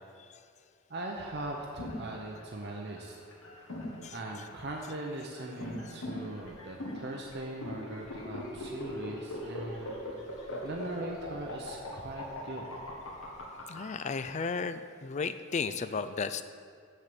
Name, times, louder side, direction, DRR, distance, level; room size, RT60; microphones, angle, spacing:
voice 1, 0.9-3.2 4.1-10.2 10.6-12.7, right 1 dB, 50° right, 0 dB, 0.7 m, -40 dB
sound 1, 1.3-13.8, left 1 dB, 80° left, 1.7 m, -41 dB
voice 2, 13.7-16.4, left 5 dB, 35° left, 12 dB, 0.3 m, -34 dB
7.5 x 6.6 x 6.8 m, 2.2 s
head